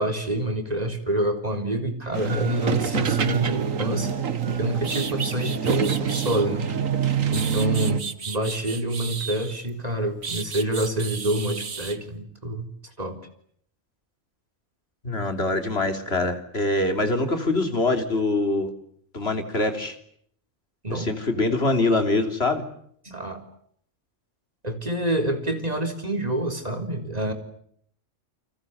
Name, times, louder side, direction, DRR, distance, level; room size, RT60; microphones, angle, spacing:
voice 1, 0.0-4.2 4.6-6.8 7.3-12.7 13.0-13.2 20.8-21.1 23.0-23.4 24.6-27.3, right 1 dB, 30° right, 6 dB, 4.0 m, -27 dB
sound 1, 2.1-8.0, right 7 dB, 85° right, 1.8 m, -26 dB
sound 2, 4.4-4.5 4.8-6.5 7.0-9.7 10.2-12.0, right 5 dB, 55° right, 1.7 m, -34 dB
voice 2, 15.0-18.7 19.1-20.0 20.9-22.6, left 2 dB, 50° left, 7 dB, 3.6 m, -24 dB
29.5 x 25.0 x 8.0 m, 0.66 s
omnidirectional pair, 1.3 m